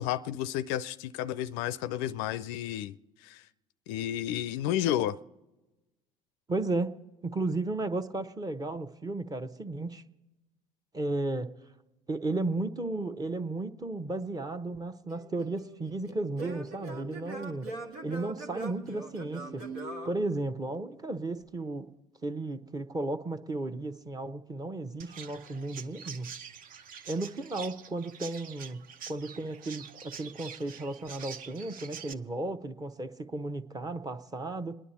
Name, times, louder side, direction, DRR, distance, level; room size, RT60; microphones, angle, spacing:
voice 1, 0.0-3.0 3.2-3.4 3.9-5.2, left 12 dB, 65° left, 0.4 m, -31 dB
voice 2, 6.5-6.9 7.2-10.0 10.9-11.5 12.1-17.7 18.0-19.6 20.0-21.9 22.2-26.3 27.1-34.7, right 2 dB, 20° right, 0.9 m, -34 dB
Singing / Plucked string instrument, 15.1-21.0, right 2 dB, 85° right, 1.4 m, -42 dB
Chirp tweet, 25.0-32.1, right 7 dB, 50° right, 0.7 m, -46 dB
27.5 x 10.0 x 4.2 m
hypercardioid pair, 70°, 18 cm